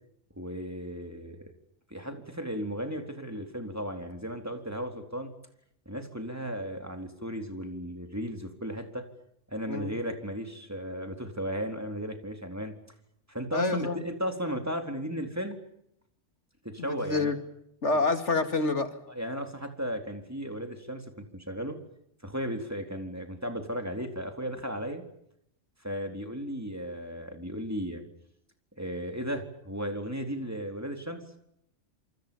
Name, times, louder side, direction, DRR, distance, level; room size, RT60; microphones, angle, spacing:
voice 1, 0.4-1.4 1.9-5.3 5.9-9.0 9.5-12.7 13.3-15.6 16.6-17.3 19.1-21.8 22.2-25.0 25.8-28.0 28.8-31.2, equal, 15° right, 5 dB, 4.1 m, -35 dB
voice 2, 13.5-14.0 16.8-17.4 17.8-18.9, left 3 dB, 70° left, 8 dB, 2.5 m, -27 dB
27.5 x 26.0 x 7.2 m, 0.76 s
omnidirectional pair, 1.2 m